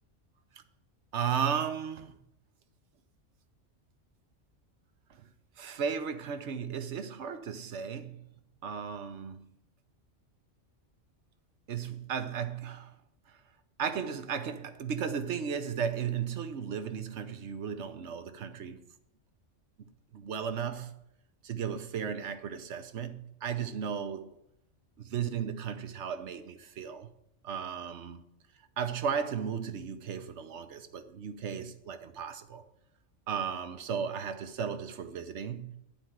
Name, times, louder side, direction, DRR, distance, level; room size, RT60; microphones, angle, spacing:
voice 1, 1.1-2.2 5.1-5.3 5.6-8.2 8.6-9.5 11.7-13.0 13.3-13.4 13.8-18.8 19.8-21.0 21.4-24.3 25.0-27.1 27.4-28.3 28.8-32.6 33.3-35.8, right 7 dB, 70° right, 1.2 m, -35 dB
10.5 x 4.5 x 7.8 m
omnidirectional pair, 1.3 m